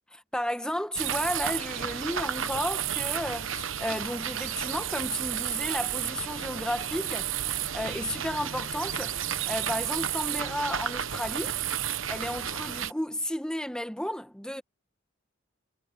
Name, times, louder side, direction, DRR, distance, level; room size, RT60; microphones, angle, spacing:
voice 1, 0.1-7.3 7.7-9.2 9.5-11.6 12.1-14.6, left 1 dB, 5° left, 1.3 m, -33 dB
sound 1, 0.9-12.9, right 9 dB, 75° right, 1.0 m, -32 dB
head